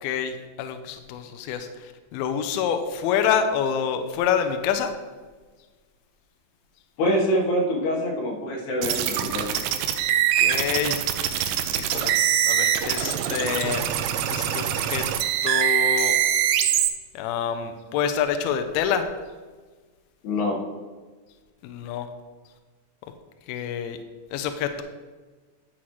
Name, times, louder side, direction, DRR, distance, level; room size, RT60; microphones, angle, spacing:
voice 1, 0.0-4.9 10.4-11.3 11.7-12.1 12.5-13.8 14.3-15.0 15.4-16.2 17.1-19.1 21.6-22.1 23.5-24.0 24.3-24.8, left 8 dB, 85° left, 8 dB, 2.2 m, -27 dB
voice 2, 7.0-9.7 20.2-20.6, equal, 70° left, -1 dB, 3.3 m, -25 dB
sound 1, 8.8-16.9, right 10 dB, 90° right, 2.9 m, -23 dB
10.5 x 7.4 x 3.1 m, 1.4 s
omnidirectional pair, 5.0 m